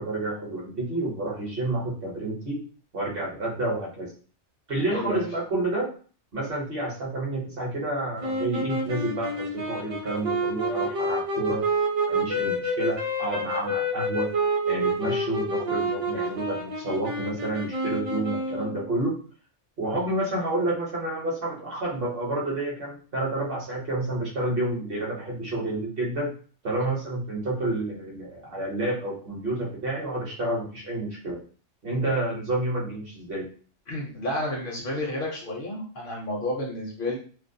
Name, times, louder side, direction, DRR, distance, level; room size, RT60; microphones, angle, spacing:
voice 1, 0.0-2.6 2.9-4.1 4.7-5.9 6.3-11.6 12.1-14.3 14.6-19.1 19.8-26.3 26.6-31.4 31.8-33.5, right 2 dB, 55° right, -2 dB, 0.9 m, -29 dB
voice 2, 4.9-5.3 33.9-37.2, left 1 dB, 60° left, -1 dB, 0.7 m, -31 dB
sound 1, 8.2-18.9, right 1 dB, 40° right, 0.5 m, -28 dB
2.4 x 2.0 x 2.6 m, 0.41 s
omnidirectional pair, 1.2 m